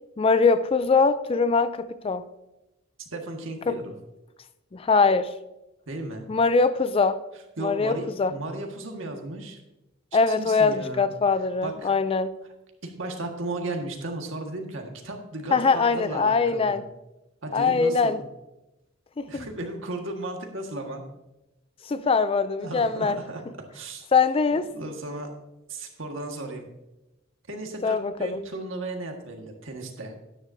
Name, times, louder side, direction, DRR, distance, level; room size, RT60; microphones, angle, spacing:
voice 1, 0.2-2.2 3.7-3.8 4.7-5.3 6.3-7.2 7.6-8.3 10.1-12.3 15.5-16.8 17.5-18.2 19.2-19.5 21.9-23.2 24.1-24.7 27.8-28.4, left 4 dB, 25° left, 13 dB, 0.4 m, -22 dB
voice 2, 3.0-3.9 5.9-6.2 7.6-9.6 10.3-11.1 11.6-11.9 12.8-16.8 17.4-18.2 19.3-21.0 22.6-23.4 23.7-24.1 24.5-25.3 25.7-26.7 27.5-30.1, right 2 dB, 65° right, 2 dB, 1.7 m, -35 dB
12.5 x 10.0 x 2.7 m, 0.94 s
head